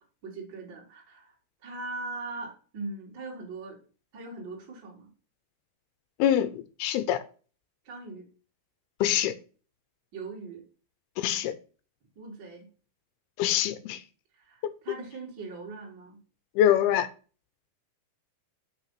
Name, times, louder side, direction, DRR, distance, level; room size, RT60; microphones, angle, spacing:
voice 1, 0.2-1.4 1.6-3.8 4.1-5.1 7.8-8.3 10.1-10.6 12.2-12.7 14.3-16.2, right 3 dB, 35° right, 2.6 m, -40 dB
voice 2, 6.2-7.2 9.0-9.4 11.2-11.6 13.4-14.0 16.6-17.1, left 11 dB, 80° left, 2.6 m, -24 dB
6.1 x 5.9 x 5.7 m
omnidirectional pair, 4.6 m